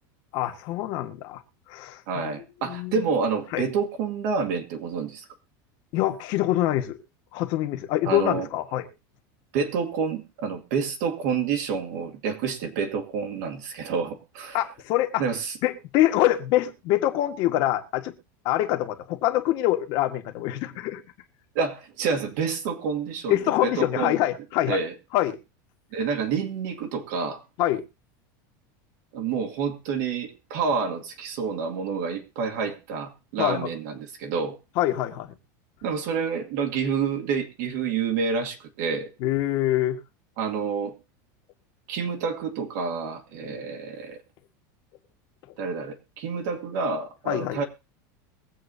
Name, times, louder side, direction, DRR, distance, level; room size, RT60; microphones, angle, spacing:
voice 1, 0.3-1.4 1.7-2.3 2.6-3.0 3.5-3.7 5.9-7.0 7.3-8.9 14.5-15.2 15.6-18.1 18.4-21.0 23.3-24.8 25.1-25.4 27.6-27.8 33.4-33.7 34.7-35.3 39.2-40.0 43.4-43.6 47.3-47.6, left 14 dB, 45° left, 1.5 m, -25 dB
voice 2, 2.1-5.3 8.0-8.5 9.5-14.6 15.2-15.5 21.5-24.2 24.7-24.9 25.9-27.4 29.1-34.6 35.8-39.1 40.4-40.9 41.9-44.2 45.6-47.6, right 5 dB, 60° right, 2.1 m, -28 dB
22.5 x 7.9 x 2.7 m
supercardioid pair, 160°, 10 cm